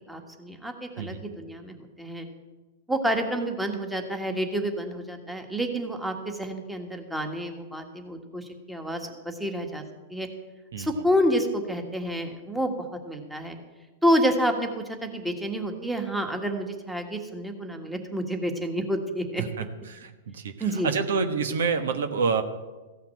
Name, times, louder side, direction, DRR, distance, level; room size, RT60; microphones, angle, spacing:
voice 1, 0.1-2.3 2.9-9.8 10.1-10.3 10.8-12.7 13.1-13.6 14.0-19.4 20.6-20.9, equal, 5° right, 4 dB, 1.6 m, -29 dB
voice 2, 19.4-22.4, right 5 dB, 75° right, 8 dB, 1.1 m, -28 dB
14.5 x 5.8 x 8.8 m, 1.2 s
hypercardioid pair, 120°, 0 cm